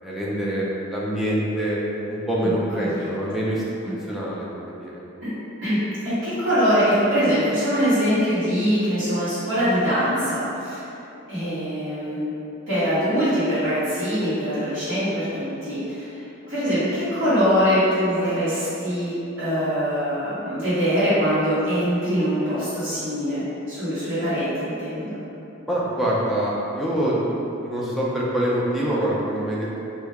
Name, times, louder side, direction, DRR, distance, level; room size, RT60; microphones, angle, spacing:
voice 1, 0.0-1.8 2.1-3.6 4.1-5.0 25.7-27.2 27.6-29.8, right 1 dB, ahead, -7 dB, 0.5 m, -25 dB
voice 2, 2.4-3.1 3.8-3.9 5.2-5.3 5.6-10.8 11.3-12.3 12.7-25.2, equal, 60° right, -14 dB, 1.5 m, -23 dB
3.3 x 2.7 x 3.5 m, 3.0 s
head